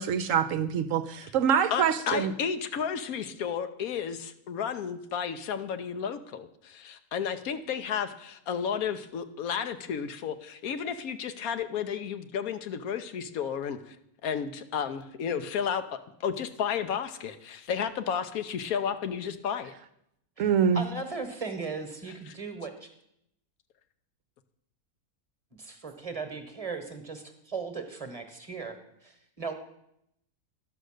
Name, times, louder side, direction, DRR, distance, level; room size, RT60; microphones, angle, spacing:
voice 1, 0.0-2.3 20.4-20.8, right 7 dB, 70° right, 11 dB, 0.9 m, -25 dB
voice 2, 1.7-14.0 14.2-19.8 22.3-22.4, left 7 dB, 75° left, 10 dB, 1.2 m, -32 dB
voice 3, 20.7-22.9 25.6-28.8 29.0-29.5, right 4 dB, 25° right, 6 dB, 1.2 m, -37 dB
11.5 x 6.5 x 6.4 m, 0.76 s
omnidirectional pair, 1.5 m